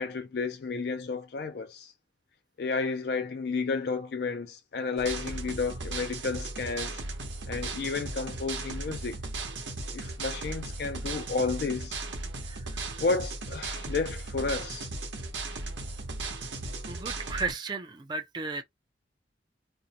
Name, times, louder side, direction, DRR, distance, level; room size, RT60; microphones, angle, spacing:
voice 1, 0.0-1.9 2.6-7.0 7.5-9.2 9.9-12.0 13.0-14.9, left 4 dB, 60° left, 0.4 m, -32 dB
sound 1, 5.0-17.5, right 2 dB, 85° right, 0.8 m, -36 dB
voice 2, 12.4-13.0 16.9-18.6, right 3 dB, 25° right, 0.4 m, -35 dB
2.5 x 2.1 x 2.7 m
head